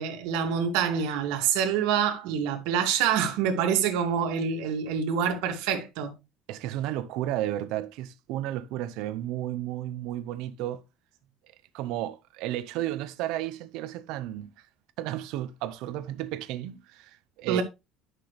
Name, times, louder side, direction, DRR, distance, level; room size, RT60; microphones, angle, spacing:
voice 1, 0.0-6.1 17.5-17.6, right 7 dB, 75° right, 2.3 m, -26 dB
voice 2, 6.5-10.8 11.7-14.5 15.0-17.6, right 13 dB, 60° right, 0.8 m, -33 dB
11.5 x 6.1 x 3.3 m
cardioid pair, 175°, 0 cm